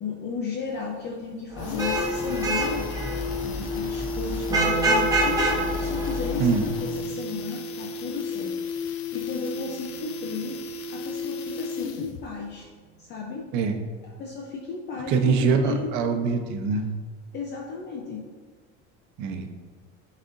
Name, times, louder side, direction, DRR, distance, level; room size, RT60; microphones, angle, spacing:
voice 1, 0.0-2.9 3.4-8.5 8.8-10.6 10.9-12.7 13.0-13.5 14.0-15.9 17.3-18.3, left 5 dB, 35° left, -1 dB, 0.7 m, -34 dB
sound 1, 0.7-0.8 1.1-1.2 1.4-12.3 12.6-12.7, left 4 dB, 85° left, 0.6 m, -33 dB
Vehicle horn car horn honking / Traffic noise roadway noise, 1.6-6.8, right 1 dB, 10° right, 0.7 m, -27 dB
Harp, 4.5-11.0 12.6-13.6, right 6 dB, 35° right, 1.2 m, -40 dB
voice 2, 15.1-16.9 19.2-19.5, right 5 dB, 70° right, 6 dB, 0.8 m, -23 dB
10.5 x 4.2 x 2.6 m, 1.5 s
cardioid pair, 165°, 29 cm